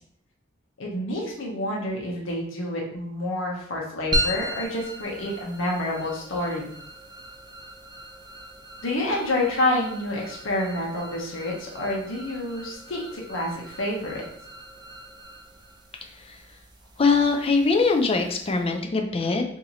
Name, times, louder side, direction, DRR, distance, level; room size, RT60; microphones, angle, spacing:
voice 1, 0.8-6.7 8.8-14.2, left 1 dB, 85° left, -2 dB, 0.9 m, -28 dB
sound 1, 4.1-18.8, right 1 dB, 20° right, 0.5 m, -37 dB
voice 2, 16.0-16.4 17.0-19.4, left 4 dB, 30° left, 4 dB, 0.5 m, -22 dB
2.9 x 2.7 x 3.9 m, 0.69 s
head